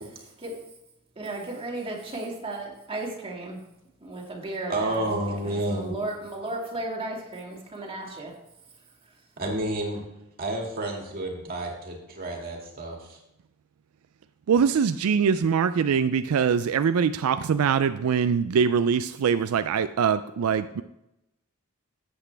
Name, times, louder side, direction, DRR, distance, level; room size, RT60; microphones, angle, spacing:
voice 1, 1.2-3.6 4.0-5.1 5.4-8.3, right 2 dB, 25° right, -2 dB, 2.2 m, -34 dB
voice 2, 4.7-5.9 9.4-10.0 10.4-13.2, right 1 dB, 45° right, 0 dB, 2.1 m, -30 dB
voice 3, 14.5-20.8, right 6 dB, 80° right, 11 dB, 0.4 m, -23 dB
13.5 x 8.1 x 3.4 m, 0.88 s
head